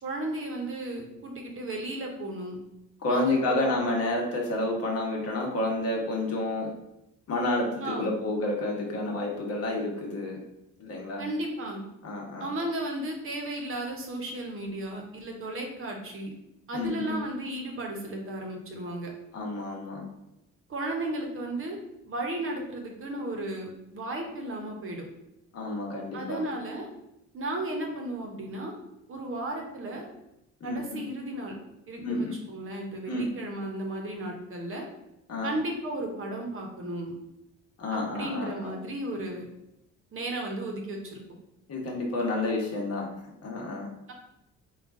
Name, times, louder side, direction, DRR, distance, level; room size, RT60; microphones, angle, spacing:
voice 1, 0.0-2.6 3.1-3.6 7.8-8.1 11.2-11.8 12.4-16.3 16.7-19.1 20.7-21.8 22.1-25.1 26.1-26.9 27.3-28.7 29.1-30.1 30.6-31.5 31.9-34.8 35.4-37.1 37.9-39.5 40.1-41.2 44.1-44.2, right 1 dB, 45° right, 1 dB, 0.9 m, -34 dB
voice 2, 3.0-6.7 7.3-10.4 10.8-11.2 12.0-12.5 16.7-17.2 19.3-20.1 25.5-26.4 30.6-31.1 32.0-32.4 33.1-33.3 35.3-35.6 37.8-38.8 41.7-43.1 43.4-43.9, left 2 dB, 50° left, -1 dB, 1.1 m, -30 dB
3.7 x 2.4 x 3.6 m, 0.86 s
cardioid pair, 105°, 31 cm